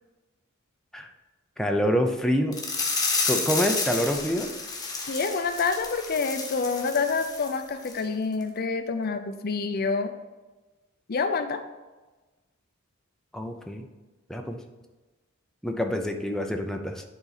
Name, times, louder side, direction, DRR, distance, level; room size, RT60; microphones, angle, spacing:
voice 1, 1.6-2.6 3.3-4.5 13.3-13.9 14.3-14.6 15.6-17.0, equal, 5° left, 3 dB, 0.5 m, -26 dB
sound 1, 2.5-7.6 7.8-8.0 8.4-8.5, left 4 dB, 20° left, 1.2 m, -30 dB
voice 2, 5.1-10.1 11.1-11.6, left 4 dB, 45° left, 8 dB, 0.5 m, -27 dB
9.9 x 4.1 x 4.0 m, 1.2 s
head